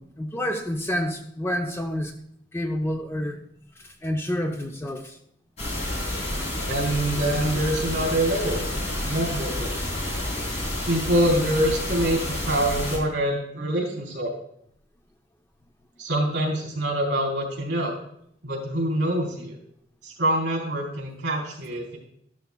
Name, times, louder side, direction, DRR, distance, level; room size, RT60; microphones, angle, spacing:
voice 1, 0.0-2.1 2.5-3.4 3.8-5.2, equal, 15° left, 3 dB, 0.6 m, -29 dB
sound 1, 5.6-13.0, left 1 dB, 35° left, 3.6 m, -29 dB
voice 2, 6.6-8.6 9.0-9.8 10.8-14.3 16.0-17.9 18.4-19.6 20.0-22.0, right 1 dB, 70° right, 1 dB, 3.7 m, -25 dB
13.0 x 12.5 x 2.3 m, 0.71 s
head